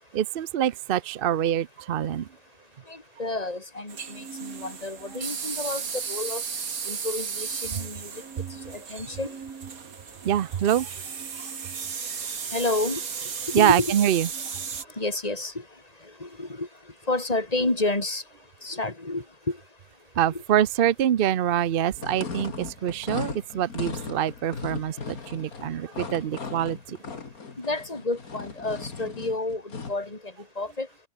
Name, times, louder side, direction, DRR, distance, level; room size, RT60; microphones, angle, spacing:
voice 1, 0.1-2.3 10.2-10.9 13.5-14.3 20.2-27.0, right 10 dB, 55° right, 0.7 m, -25 dB
voice 2, 3.2-5.8 6.1-6.4 6.9-8.1 8.7-9.3 12.5-13.0 13.5-13.9 15.0-15.5 16.2-16.7 17.1-18.2 18.6-19.6 27.6-29.6 29.9-30.2 30.6-30.9, left 2 dB, 25° left, 3.9 m, -29 dB
sound 1, 3.9-14.8, right 6 dB, 75° right, 2.3 m, -35 dB
sound 2, 21.9-30.0, left 5 dB, 75° left, 2.9 m, -37 dB
omnidirectional pair, 1.5 m